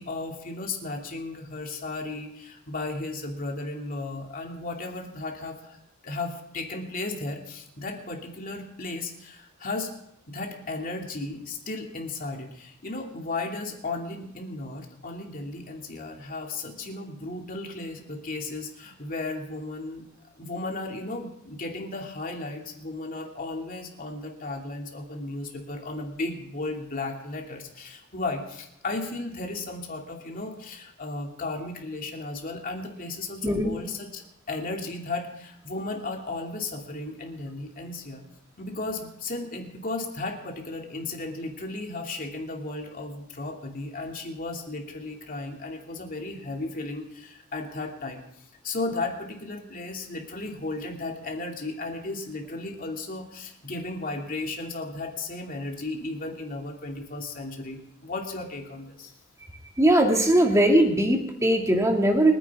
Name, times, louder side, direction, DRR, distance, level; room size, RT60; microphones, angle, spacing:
voice 1, 0.0-5.8 6.0-9.9 10.3-20.0 20.4-38.2 38.6-48.2 48.6-59.1, left 2 dB, 45° left, 1 dB, 2.6 m, -35 dB
voice 2, 59.8-62.3, right 1 dB, 15° right, 1 dB, 2.3 m, -20 dB
30.0 x 10.0 x 3.6 m, 0.78 s
head